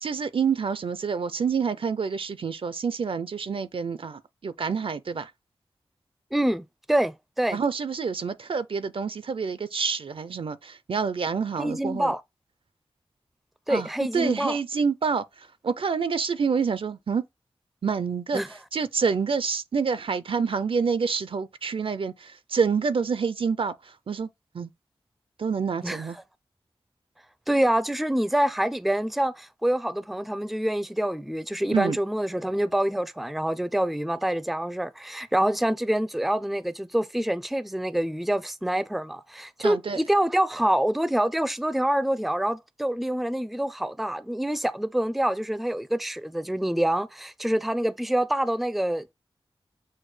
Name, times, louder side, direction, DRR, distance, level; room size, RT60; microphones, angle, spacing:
voice 1, 0.0-5.3 7.5-12.1 13.7-13.9 14.1-15.2 15.6-17.2 17.8-18.4 18.7-24.3 24.5-24.7 25.4-26.2 31.7-32.0 39.6-40.0, right 5 dB, 65° right, 0.5 m, -27 dB
voice 2, 6.3-7.6 11.6-12.2 13.7-14.6 18.3-18.5 25.8-26.1 27.5-49.1, right 1 dB, ahead, 0.4 m, -26 dB
6.4 x 2.2 x 3.2 m
cardioid pair, 40°, 10 cm